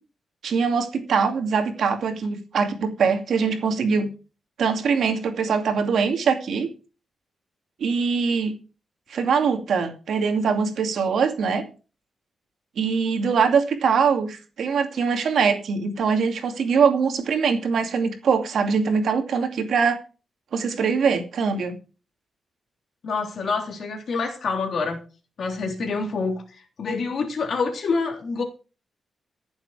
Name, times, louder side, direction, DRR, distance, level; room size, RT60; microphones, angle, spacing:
voice 1, 0.4-4.1 4.6-6.7 7.8-8.5 9.1-11.7 12.8-20.0 20.5-21.8, right 5 dB, 70° right, 2.5 m, -22 dB
voice 2, 23.0-25.0 25.4-28.4, left 4 dB, 55° left, 3.4 m, -27 dB
15.0 x 7.3 x 4.9 m
wide cardioid pair, 160°, 0 cm